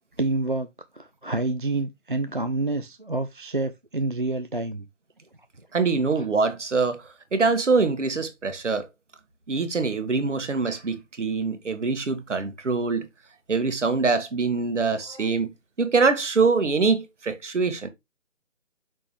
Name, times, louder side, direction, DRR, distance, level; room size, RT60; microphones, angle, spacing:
voice 1, 0.2-0.7 0.9-4.9 6.2-6.3 15.1-15.3, right 2 dB, 40° right, 0.5 m, -28 dB
voice 2, 5.7-8.9 9.5-13.1 13.5-15.5 15.8-17.9, right 4 dB, 65° right, 1.6 m, -24 dB
6.1 x 5.7 x 3.2 m
hypercardioid pair, 175°, 39 cm